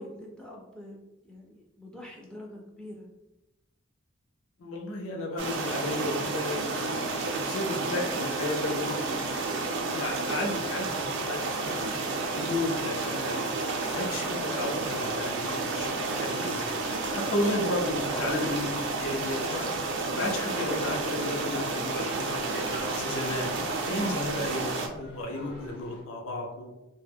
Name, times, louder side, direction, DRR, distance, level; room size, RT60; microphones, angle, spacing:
voice 1, 0.0-3.1, left 1 dB, 5° left, -2 dB, 0.3 m, -45 dB
voice 2, 4.6-9.2 9.9-13.5 13.9-16.6 17.1-18.7 19.0-19.7 20.2-22.6 23.0-23.5 23.9-26.7, left 1 dB, 80° left, 0 dB, 0.6 m, -33 dB
sound 1, 5.4-24.9, right 3 dB, 60° right, 0.4 m, -31 dB
sound 2, 14.7-26.0, left 1 dB, 60° left, 0.9 m, -49 dB
2.1 x 2.0 x 3.3 m, 0.93 s
head